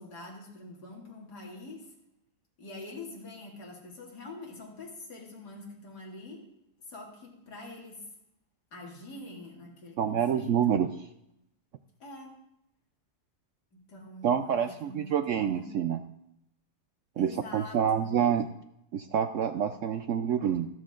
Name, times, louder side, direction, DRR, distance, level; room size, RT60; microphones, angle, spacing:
voice 1, 0.0-1.9 2.6-6.4 6.9-8.1 8.7-10.8 12.0-12.4 13.7-15.8 17.1-18.2, left 2 dB, 70° left, -3 dB, 3.1 m, -45 dB
voice 2, 10.0-10.9 14.2-16.0 17.2-18.5 18.9-20.7, right 8 dB, 70° right, 9 dB, 0.7 m, -27 dB
14.0 x 13.5 x 3.8 m, 0.81 s
omnidirectional pair, 1.8 m